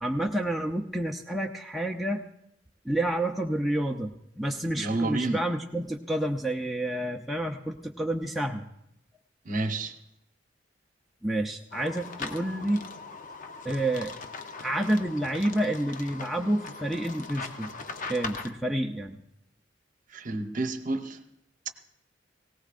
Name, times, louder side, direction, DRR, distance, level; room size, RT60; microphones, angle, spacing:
voice 1, 0.0-2.2 2.8-8.7 11.2-12.8 13.6-14.1 14.6-17.8 18.1-19.2, right 1 dB, ahead, 0 dB, 0.5 m, -29 dB
voice 2, 4.8-5.4 9.4-9.9 20.1-21.2, right 2 dB, 45° right, 7 dB, 0.9 m, -29 dB
sound 1, 11.7-18.5, left 4 dB, 45° left, 0.7 m, -40 dB
18.5 x 17.5 x 2.5 m, 0.78 s
head